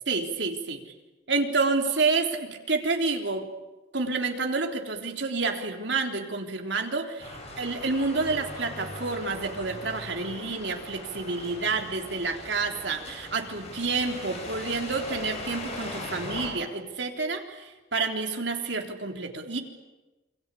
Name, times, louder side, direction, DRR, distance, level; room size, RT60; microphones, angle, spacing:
voice 1, 0.1-0.8 1.3-3.5 3.9-19.6, right 3 dB, 70° right, 3 dB, 3.7 m, -29 dB
sound 1, 7.2-16.5, left 1 dB, 35° left, 7.0 m, -40 dB
28.5 x 23.5 x 8.5 m, 1.1 s
head